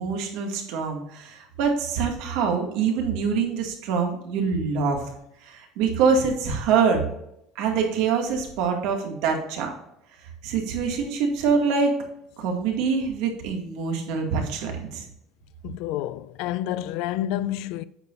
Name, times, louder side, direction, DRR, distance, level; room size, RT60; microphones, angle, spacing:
voice 1, 0.0-5.0 5.4-7.1 7.6-9.7 10.4-11.9 12.4-15.1, right 5 dB, 70° right, 2.1 m, -25 dB
voice 2, 15.6-17.8, left 12 dB, 65° left, 0.4 m, -29 dB
8.9 x 7.0 x 2.6 m
cardioid pair, 165°, 0 cm